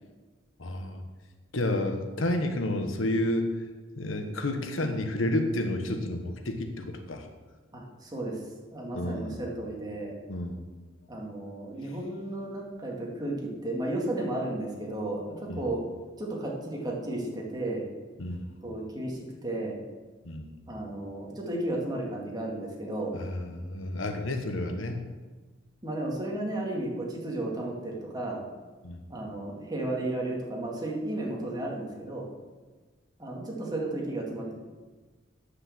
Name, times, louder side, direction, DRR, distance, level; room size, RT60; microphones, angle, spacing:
voice 1, 0.6-1.0 1.5-3.5 4.0-7.3 8.9-9.4 10.3-10.6 15.5-15.7 18.2-18.5 20.2-20.5 23.1-25.1 28.8-29.1, left 1 dB, 80° left, 6 dB, 1.2 m, -30 dB
voice 2, 7.7-8.4 8.7-10.2 11.1-15.8 16.2-17.9 18.6-19.8 20.7-23.2 25.8-28.4 29.1-32.3 33.2-34.5, right 1 dB, 20° right, -2 dB, 2.3 m, -33 dB
9.8 x 6.6 x 7.3 m, 1.3 s
head